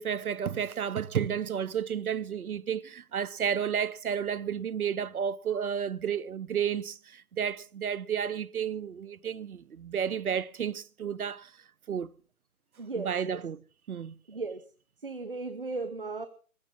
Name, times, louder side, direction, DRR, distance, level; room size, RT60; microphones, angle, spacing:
voice 1, 0.0-11.5 11.9-12.1 13.0-13.6 13.9-14.2, right 8 dB, 80° right, 0.7 m, -32 dB
voice 2, 12.8-13.4 14.3-14.7 15.0-16.3, right 3 dB, 40° right, 0.9 m, -36 dB
20.0 x 15.0 x 3.7 m
hypercardioid pair, 180°, 43 cm